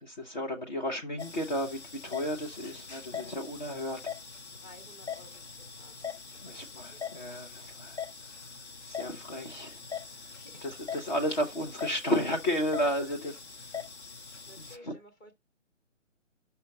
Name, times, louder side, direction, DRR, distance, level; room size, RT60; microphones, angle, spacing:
voice 1, 0.0-4.0 6.4-8.0 8.9-9.8 10.1-13.2 14.7-14.9, equal, 35° left, 1.0 m, -33 dB
sound 1, 1.2-14.8, left 6 dB, 60° left, 1.2 m, -42 dB
voice 2, 4.5-5.3 5.7-7.1 10.3-10.8 12.8-13.3 14.4-15.3, left 1 dB, 15° left, 1.2 m, -53 dB
5.8 x 5.1 x 4.9 m
figure-of-eight pair, 145°, 38 cm